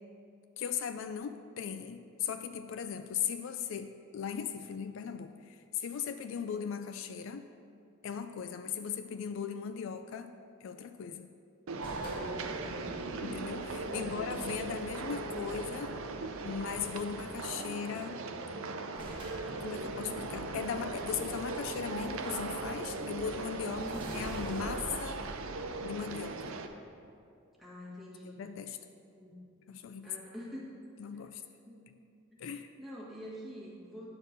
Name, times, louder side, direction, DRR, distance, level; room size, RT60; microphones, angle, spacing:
voice 1, 0.6-7.5 8.0-10.3 10.6-11.3 13.2-16.0 16.4-18.2 19.6-23.8 24.1-25.2 25.8-26.5 28.2-28.8 29.7-30.2 31.0-31.4 32.4-32.7, left 7 dB, 60° left, 9 dB, 0.3 m, -38 dB
sound 1, 11.7-26.7, right 3 dB, 75° right, 0.6 m, -38 dB
sound 2, 11.8-17.3 18.3-18.4 18.6-18.7 19.0-26.4, right 1 dB, 20° right, 1.5 m, -48 dB
voice 2, 11.9-13.0 13.9-14.2 23.8-24.1 27.6-28.4 29.1-29.3 30.0-30.8 31.1-31.2 31.7-32.0 32.3-32.5 32.8-34.1, left 1 dB, ahead, -6 dB, 1.5 m, -46 dB
9.6 x 4.4 x 6.4 m, 2.5 s
head